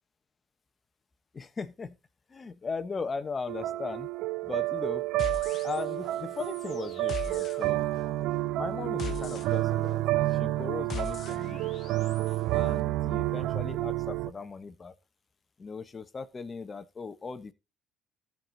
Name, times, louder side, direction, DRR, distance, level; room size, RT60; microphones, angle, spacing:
voice 1, 1.3-2.0 2.3-4.1 4.4-5.1 5.6-7.9 8.5-11.7 12.5-14.9 15.6-17.5, left 4 dB, 30° left, 1.1 m, -38 dB
sound 1, 3.5-14.3, right 17 dB, 75° right, 0.4 m, -30 dB
sound 2, 5.2-6.1 6.4-12.4, left 6 dB, 50° left, 1.0 m, -41 dB
14.0 x 4.9 x 3.8 m
supercardioid pair, 85°, 0 cm